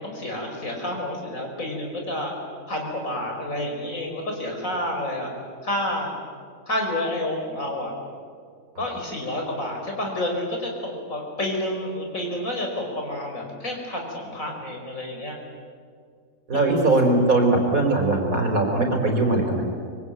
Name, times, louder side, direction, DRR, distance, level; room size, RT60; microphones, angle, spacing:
voice 1, 0.0-2.3 2.7-5.3 5.6-6.1 6.7-8.0 8.8-15.4 16.5-17.0, left 1 dB, 75° left, 1 dB, 5.7 m, -29 dB
voice 2, 16.5-19.6, right 2 dB, 85° right, 3 dB, 4.7 m, -20 dB
24.5 x 24.5 x 9.2 m, 2.1 s
omnidirectional pair, 1.4 m